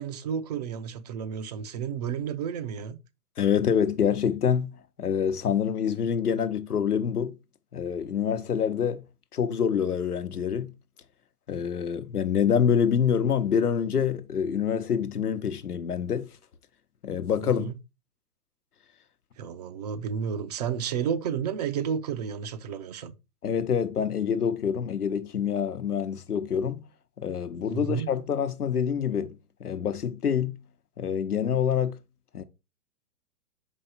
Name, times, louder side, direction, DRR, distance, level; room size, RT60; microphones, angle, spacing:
voice 1, 0.0-3.0 17.4-17.7 19.4-23.1 27.7-28.1, right 7 dB, 30° right, 0.5 m, -31 dB
voice 2, 3.4-4.7 5.0-7.4 7.7-9.0 9.3-10.7 11.5-16.3 17.0-17.7 23.4-26.8 27.2-30.6 31.0-32.0 32.3-32.4, left 7 dB, 90° left, 1.0 m, -26 dB
5.7 x 5.0 x 4.3 m
hypercardioid pair, 130°, 44 cm